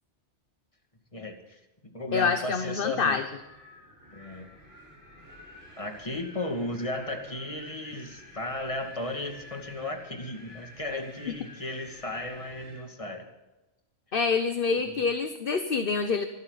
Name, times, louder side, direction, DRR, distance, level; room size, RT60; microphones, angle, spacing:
voice 1, 1.1-3.2 4.1-4.5 5.8-13.3 14.8-15.0, left 1 dB, 30° left, 3 dB, 2.5 m, -35 dB
voice 2, 2.1-3.2 14.1-16.3, left 5 dB, 55° left, 8 dB, 1.2 m, -26 dB
Wind, 2.9-12.9, left 1 dB, 90° right, 7.9 m, -50 dB
25.5 x 13.0 x 4.1 m, 1.0 s
omnidirectional pair, 1.2 m